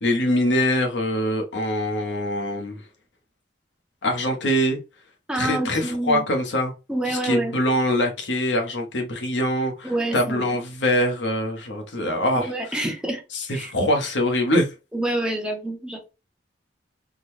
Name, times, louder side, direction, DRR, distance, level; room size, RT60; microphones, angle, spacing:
voice 1, 0.0-2.8 4.0-4.8 5.3-6.7 7.1-12.8 13.3-14.7, left 1 dB, 90° left, 1.0 m, -23 dB
voice 2, 5.3-6.2 6.9-7.5 9.8-10.5 12.4-13.2 13.5-13.7 14.9-16.1, right 1 dB, 5° right, 0.7 m, -27 dB
3.8 x 2.1 x 3.1 m
head